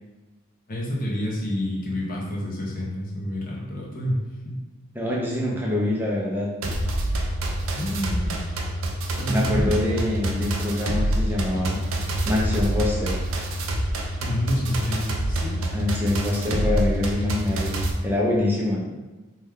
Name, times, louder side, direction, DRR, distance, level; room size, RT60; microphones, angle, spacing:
voice 1, 0.7-4.2 4.4-4.6 7.7-8.4 9.2-10.0 14.2-15.7, equal, 40° left, -5 dB, 0.8 m, -28 dB
voice 2, 5.0-6.5 9.3-11.8 12.3-13.2 15.7-18.8, left 2 dB, 10° right, -3 dB, 0.4 m, -25 dB
sound 1, 6.6-17.9, right 1 dB, 75° right, 0.4 m, -26 dB
3.2 x 2.2 x 3.5 m, 1.1 s
head